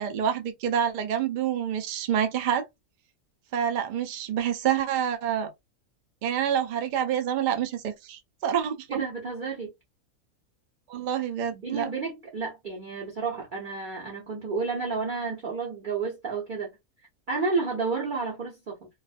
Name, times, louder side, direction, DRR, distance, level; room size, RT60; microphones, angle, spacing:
voice 1, 0.0-2.6 3.5-5.5 6.2-9.0 10.9-11.9, right 9 dB, 85° right, 0.4 m, -27 dB
voice 2, 8.9-9.7 11.5-16.7 17.3-18.9, right 4 dB, 50° right, 0.6 m, -31 dB
2.4 x 2.3 x 2.4 m
omnidirectional pair, 1.5 m